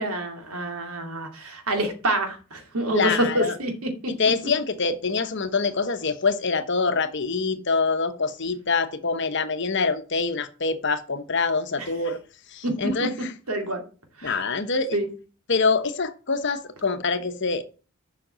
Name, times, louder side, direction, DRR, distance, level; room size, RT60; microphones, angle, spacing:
voice 1, 0.0-4.1 11.8-11.9 12.6-12.7 13.5-13.8 14.2-14.4 14.9-15.1, right 1 dB, 75° right, 2.5 m, -27 dB
voice 2, 2.9-3.6 4.2-12.2 12.5-13.3 14.2-15.0 15.5-17.7, left 4 dB, 50° left, 1.0 m, -25 dB
7.7 x 5.9 x 7.5 m
head